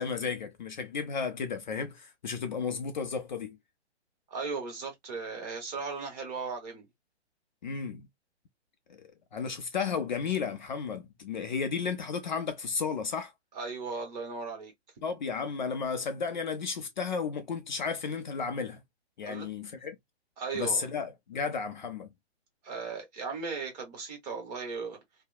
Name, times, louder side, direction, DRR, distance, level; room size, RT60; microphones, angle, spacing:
voice 1, 0.0-3.6 7.6-8.1 8.9-13.3 15.0-18.8 19.2-20.0 20.5-22.1, left 5 dB, 45° left, 0.5 m, -33 dB
voice 2, 4.3-6.9 13.5-14.7 19.2-19.5 20.4-20.8 22.6-25.0, right 4 dB, 35° right, 1.3 m, -37 dB
2.8 x 2.1 x 2.3 m
hypercardioid pair, 150°, 34 cm